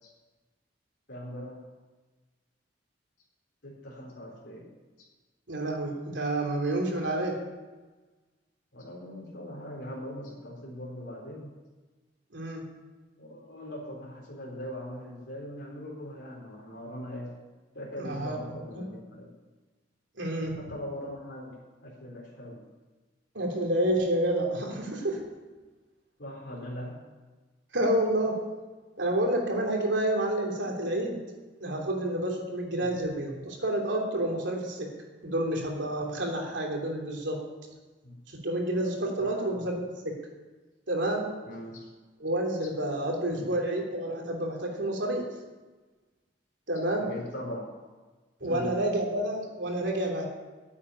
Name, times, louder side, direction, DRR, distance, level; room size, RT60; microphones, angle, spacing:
voice 1, 1.1-1.6 3.6-4.7 8.7-11.5 13.2-17.3 17.7-19.3 20.6-21.6 21.8-22.6 26.2-27.0 32.6-32.9 38.0-38.2 39.2-39.6 41.5-41.9 43.3-43.6 47.1-47.7 48.4-48.8, left 1 dB, 70° left, -4 dB, 3.8 m, -40 dB
voice 2, 5.5-7.4 12.3-12.6 18.0-18.9 20.2-20.6 23.3-25.2 27.7-28.4 29.0-31.2 31.6-34.9 35.2-37.4 38.4-40.1 40.9-41.2 42.2-45.3 46.7-47.0 48.4-50.3, right 1 dB, 80° right, 0 dB, 3.1 m, -29 dB
9.7 x 8.6 x 9.9 m, 1.3 s
head